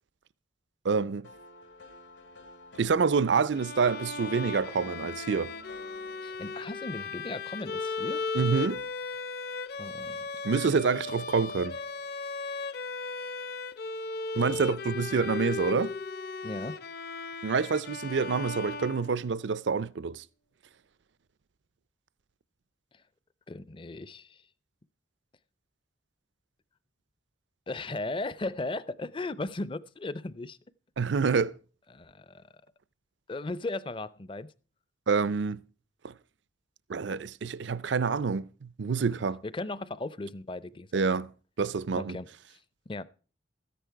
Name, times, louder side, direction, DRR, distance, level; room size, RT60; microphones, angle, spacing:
voice 1, 0.8-1.3 2.8-5.5 8.3-8.8 10.4-11.8 14.3-15.9 17.4-20.2 31.0-31.5 35.1-35.6 36.0-36.1 36.9-39.4 40.9-41.3 41.6-42.2, right 5 dB, 70° right, 0.5 m, -27 dB
sound 1, 1.2-7.1, left 1 dB, 80° left, 3.2 m, -52 dB
Bowed string instrument, 3.5-19.5, left 4 dB, 55° left, 0.8 m, -36 dB
voice 2, 6.2-8.2 9.8-10.2 15.2-15.3 16.4-16.8 22.9-23.0 23.5-24.4 27.7-30.6 31.9-32.4 33.3-34.5 39.4-41.0 41.9-42.6 42.9-43.0, left 2 dB, 25° left, 0.5 m, -37 dB
13.5 x 10.0 x 4.6 m
head